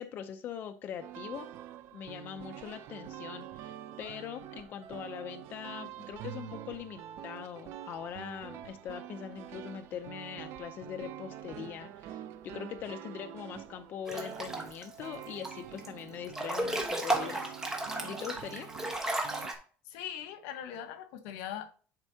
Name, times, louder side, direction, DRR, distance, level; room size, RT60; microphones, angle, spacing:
voice 1, 0.0-1.5 1.9-17.5 18.0-18.7, left 9 dB, 40° left, 0.5 m, -42 dB
sound 1, 1.0-19.5, right 11 dB, 55° right, 0.6 m, -46 dB
Breathing / Bathtub (filling or washing) / Splash splatter, 14.1-14.8 15.2-15.9 16.2-19.5, right 1 dB, 10° right, 1.1 m, -34 dB
voice 2, 19.9-21.7, left 10 dB, 85° left, 1.1 m, -41 dB
10.5 x 4.5 x 2.7 m
cardioid pair, 155°, 5 cm